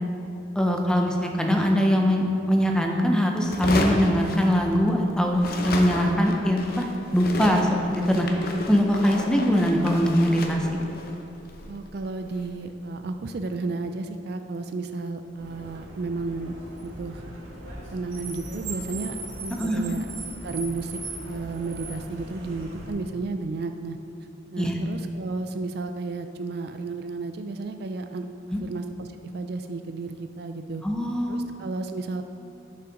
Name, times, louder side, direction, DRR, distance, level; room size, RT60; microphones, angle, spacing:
voice 1, 0.6-6.9 7.1-10.7 19.5-19.9 24.6-24.7 28.5-28.6 30.8-31.4, equal, 5° left, 1 dB, 0.6 m, -22 dB
sound 1, 3.4-5.0 5.3-12.5, left 1 dB, 50° left, 0.7 m, -32 dB
voice 2, 11.7-16.5 16.8-17.2 17.9-20.1 20.4-21.0 21.3-24.0 24.5-29.1 29.3-30.8 31.3-32.2, right 3 dB, 55° right, 7 dB, 0.3 m, -32 dB
Car, 15.4-22.9, right 2 dB, 85° right, 1.5 m, -39 dB
9.8 x 5.6 x 3.9 m, 2.8 s
head